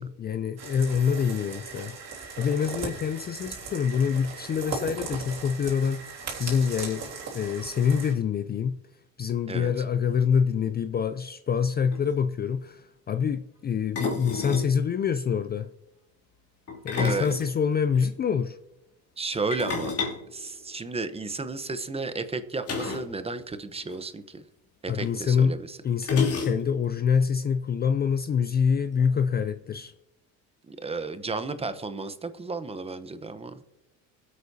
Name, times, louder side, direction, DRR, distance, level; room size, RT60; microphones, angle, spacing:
voice 1, 0.0-8.8 9.2-15.7 16.8-18.6 24.9-25.6 25.8-29.9, left 7 dB, 30° left, 0.4 m, -26 dB
sound 1, 0.6-8.1, right 5 dB, 50° right, 3.6 m, -38 dB
sound 2, 11.6-11.7 11.9-12.1 13.9-14.7 16.7-18.1 19.5-21.2 22.6-23.2 23.4-23.5 23.8-24.0 25.0-25.1 26.0-26.9, left 4 dB, 45° left, 2.9 m, -32 dB
voice 2, 17.0-17.3 19.2-19.9 20.3-24.4 24.8-25.8 30.7-33.6, right 3 dB, 15° right, 0.9 m, -33 dB
21.5 x 8.3 x 2.8 m
cardioid pair, 110°, 35 cm